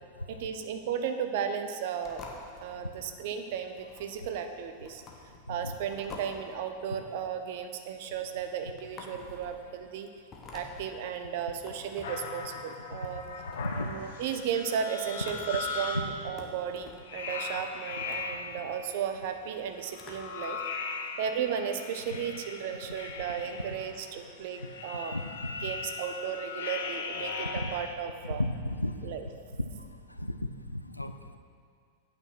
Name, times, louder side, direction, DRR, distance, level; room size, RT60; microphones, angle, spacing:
voice 1, 0.3-2.2 2.6-5.0 5.5-10.1 10.5-13.2 13.8-20.6 21.2-25.2 25.6-28.4 29.0-29.3, right 8 dB, 50° right, 7 dB, 0.7 m, -35 dB
sound 1, 2.0-20.5, left 3 dB, 25° left, 1.2 m, -51 dB
sound 2, 12.0-16.3 17.0-18.7 19.8-27.9, left 4 dB, 60° left, 0.8 m, -39 dB
voice 2, 13.6-13.9 24.6-24.7 25.1-25.2 25.5-25.7 27.5-27.7 28.4-29.2 29.5-29.7 30.2-30.4 30.7-31.4, left 1 dB, 85° left, 8 dB, 0.4 m, -34 dB
8.9 x 6.2 x 6.0 m, 2.1 s
figure-of-eight pair, 90°, 0 cm